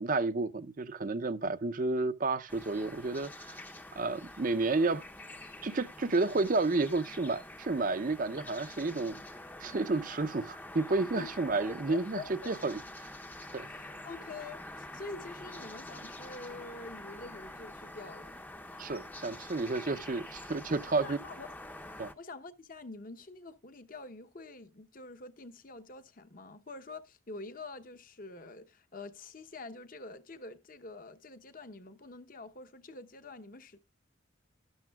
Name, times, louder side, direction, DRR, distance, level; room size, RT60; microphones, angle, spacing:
voice 1, 0.0-3.6 3.9-5.0 5.6-9.2 9.6-12.8 13.5-13.7 18.8-21.2 22.0-22.1, right 3 dB, 40° right, 0.6 m, -31 dB
sound 1, 2.5-22.1, left 1 dB, 10° left, 0.6 m, -47 dB
voice 2, 11.7-12.5 13.6-18.4 21.0-21.5 22.2-33.8, left 3 dB, 40° left, 0.9 m, -46 dB
12.0 x 12.0 x 2.3 m
head